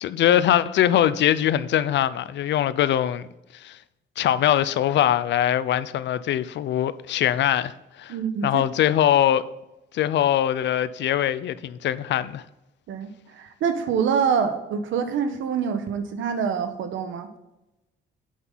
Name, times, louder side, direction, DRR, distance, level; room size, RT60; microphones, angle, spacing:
voice 1, 0.0-3.3 3.6-3.8 4.2-7.7 8.0-8.1 8.4-9.4 9.9-12.4, left 11 dB, 65° left, 0.5 m, -22 dB
voice 2, 8.1-8.7 12.9-17.3, right 6 dB, 75° right, 1.1 m, -26 dB
8.6 x 5.5 x 3.9 m
cardioid pair, 90°, 20 cm